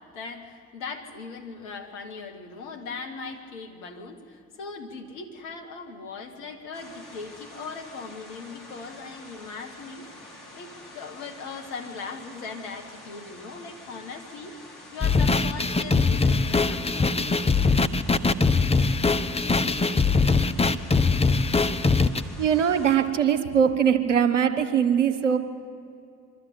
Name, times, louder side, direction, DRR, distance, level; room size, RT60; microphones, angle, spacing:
voice 1, 0.0-10.1 10.5-14.6 14.9-17.1 23.1-23.5, left 4 dB, 75° left, 3 dB, 1.8 m, -39 dB
sound 1, 6.7-23.0, left 1 dB, 60° left, 4.7 m, -47 dB
sound 2, 15.0-22.2, left 4 dB, 15° left, 0.8 m, -21 dB
voice 2, 22.4-25.4, right 8 dB, 85° right, 8 dB, 0.8 m, -21 dB
24.0 x 13.0 x 8.4 m, 2.4 s
figure-of-eight pair, 40°, 36 cm